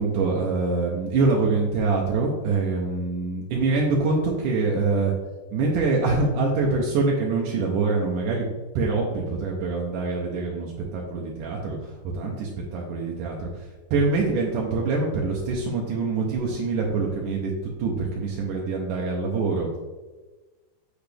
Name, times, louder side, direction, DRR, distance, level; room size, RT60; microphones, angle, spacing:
voice 1, 0.0-5.1 5.5-8.5 8.8-19.8, right 3 dB, 80° right, -2 dB, 2.5 m, -25 dB
8.3 x 5.9 x 3.4 m, 1.2 s
omnidirectional pair, 3.6 m